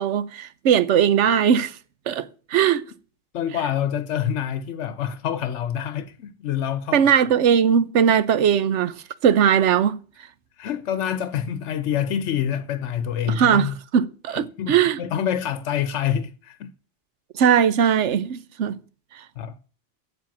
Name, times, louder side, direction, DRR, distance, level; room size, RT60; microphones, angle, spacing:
voice 1, 0.0-1.8 2.1-2.8 6.9-8.9 9.2-10.0 13.3-15.0 17.3-18.8, right 8 dB, 80° right, 1.1 m, -19 dB
voice 2, 3.3-7.0 10.6-13.8 14.3-16.7 19.4-19.5, left 9 dB, 80° left, 1.0 m, -26 dB
8.3 x 7.5 x 7.2 m
omnidirectional pair, 1.2 m